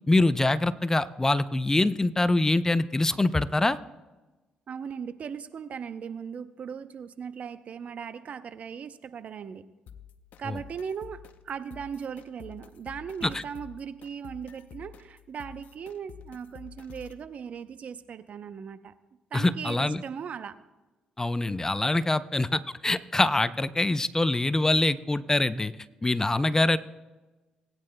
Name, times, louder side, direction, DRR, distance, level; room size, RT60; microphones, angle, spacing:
voice 1, 0.1-3.8 10.5-10.6 13.2-13.4 19.3-20.0 21.2-25.7 26.0-26.8, left 2 dB, 20° left, 14 dB, 0.6 m, -24 dB
voice 2, 4.7-9.6 10.4-18.9 19.3-20.6, right 7 dB, 55° right, 12 dB, 0.7 m, -38 dB
sound 1, 9.9-17.3, left 8 dB, 65° left, 0.7 m, -49 dB
20.0 x 9.7 x 2.2 m, 1.2 s
supercardioid pair, 55°, 3 cm